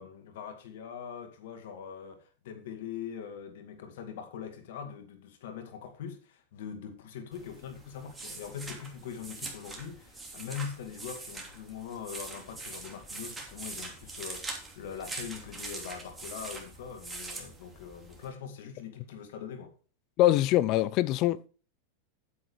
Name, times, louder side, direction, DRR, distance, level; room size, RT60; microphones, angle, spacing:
voice 1, 0.0-19.7, left 7 dB, 70° left, 2.3 m, -42 dB
sound 1, 7.3-18.3, right 3 dB, 15° right, 3.0 m, -43 dB
voice 2, 20.2-21.5, left 14 dB, 50° left, 0.5 m, -24 dB
9.5 x 7.7 x 4.7 m
hypercardioid pair, 105°, 0 cm